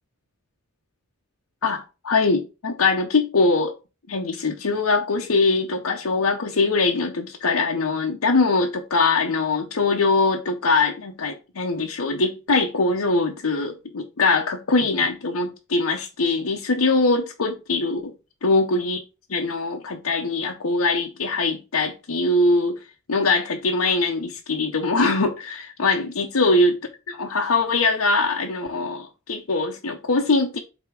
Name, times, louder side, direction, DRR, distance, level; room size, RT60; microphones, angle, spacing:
voice 1, 1.6-3.7 4.1-18.1 18.4-19.0 19.3-22.8 23.1-26.8 27.1-30.6, left 3 dB, 85° left, 0.8 m, -22 dB
8.1 x 2.9 x 4.8 m
head